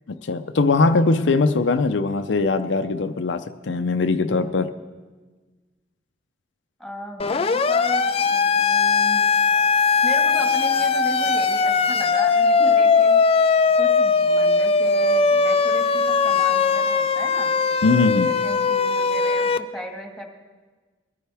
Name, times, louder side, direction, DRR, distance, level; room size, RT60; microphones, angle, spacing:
voice 1, 0.1-4.7 17.8-18.3, left 3 dB, 80° left, 8 dB, 0.6 m, -21 dB
voice 2, 6.8-9.2 10.0-13.2 13.8-17.5 18.2-20.2, equal, ahead, 1 dB, 1.7 m, -36 dB
Siren, 7.2-19.6, left 4 dB, 30° left, 0.4 m, -19 dB
22.0 x 14.0 x 3.5 m, 1.4 s
head